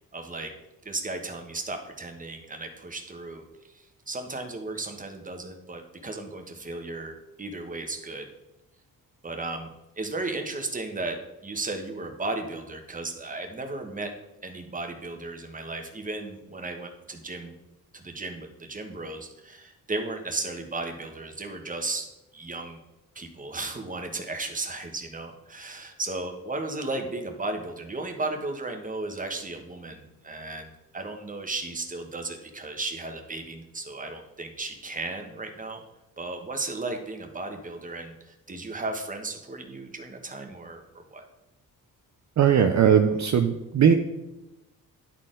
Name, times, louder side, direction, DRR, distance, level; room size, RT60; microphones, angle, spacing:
voice 1, 0.1-0.5 0.8-3.4 3.7-8.3 9.2-9.7 10.0-14.1 14.4-17.5 17.9-22.8 23.1-35.8 36.2-41.2, right 2 dB, 25° right, 4 dB, 1.2 m, -35 dB
voice 2, 42.4-43.9, right 8 dB, 55° right, 5 dB, 0.6 m, -19 dB
11.0 x 4.3 x 3.8 m, 0.96 s
cardioid pair, 95°, 35 cm